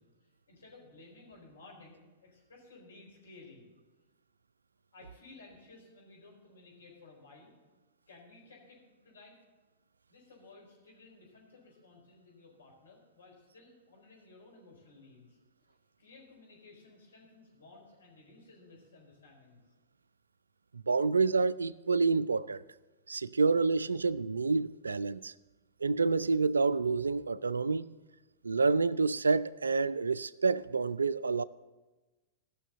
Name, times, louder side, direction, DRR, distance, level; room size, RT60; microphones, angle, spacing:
voice 1, 0.0-3.7 4.9-7.5 8.1-9.4 10.1-15.4 16.0-19.6, left 3 dB, 75° left, 4.3 m, -56 dB
voice 2, 20.7-22.6 23.1-25.3 25.8-27.9 28.4-31.4, right 4 dB, 85° right, 0.3 m, -28 dB
15.5 x 6.4 x 6.7 m
figure-of-eight pair, 100°, 0 cm